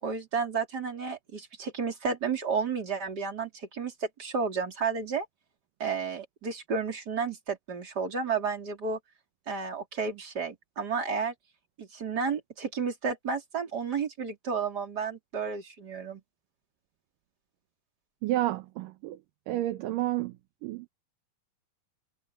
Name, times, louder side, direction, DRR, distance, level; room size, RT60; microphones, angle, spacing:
voice 1, 0.0-5.3 5.8-9.0 9.5-11.3 11.8-16.2, right 5 dB, 25° right, 3.6 m, -32 dB
voice 2, 18.2-19.2 19.5-20.3 20.6-20.9, right 15 dB, 75° right, 2.1 m, -30 dB
omnidirectional pair, 4.7 m